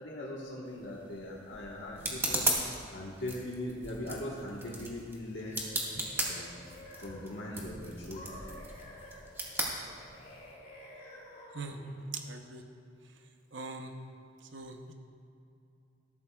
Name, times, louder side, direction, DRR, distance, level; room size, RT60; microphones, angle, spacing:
voice 1, 0.0-2.5 2.9-5.6 5.9-6.5 7.0-8.4 8.8-8.9 10.1-10.2, left 1 dB, 70° left, -4 dB, 1.4 m, -40 dB
sound 1, 0.7-10.5, right 1 dB, 15° right, 1.6 m, -37 dB
sound 2, 5.4-7.6 8.1-12.0, left 1 dB, 45° left, 2.4 m, -51 dB
voice 2, 12.1-12.6 13.5-13.9 14.5-14.9, right 4 dB, 75° right, 4 dB, 0.8 m, -41 dB
18.5 x 13.5 x 2.3 m, 2.6 s
head